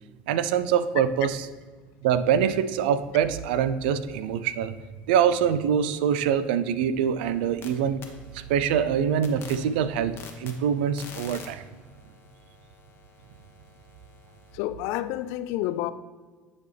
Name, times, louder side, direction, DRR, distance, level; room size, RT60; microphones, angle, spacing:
voice 1, 0.3-1.4 2.0-4.7 5.1-8.0 8.3-11.7, right 8 dB, 80° right, 14 dB, 0.4 m, -24 dB
sound 1, 7.2-7.7 8.0-14.6, left 5 dB, 50° left, 1.2 m, -48 dB
voice 2, 14.5-15.9, left 14 dB, 70° left, 14 dB, 0.4 m, -29 dB
10.0 x 4.1 x 3.3 m, 1.5 s
hypercardioid pair, 80°, 5 cm